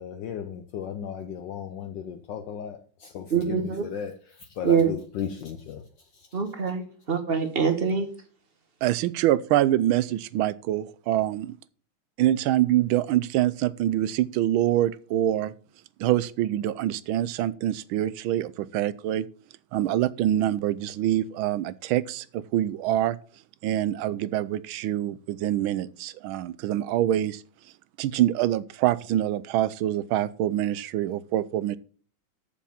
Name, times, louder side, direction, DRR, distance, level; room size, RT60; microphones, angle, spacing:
voice 1, 0.0-5.8 6.1-6.3, left 8 dB, 65° left, 1.3 m, -35 dB
voice 2, 3.3-3.9 4.6-4.9 6.3-8.1, right 6 dB, 30° right, 1.3 m, -24 dB
voice 3, 8.8-11.6 12.2-15.5 16.0-19.3 19.7-23.2 23.6-27.4 28.0-31.8, right 13 dB, 80° right, 1.4 m, -25 dB
7.1 x 7.1 x 7.1 m
omnidirectional pair, 2.3 m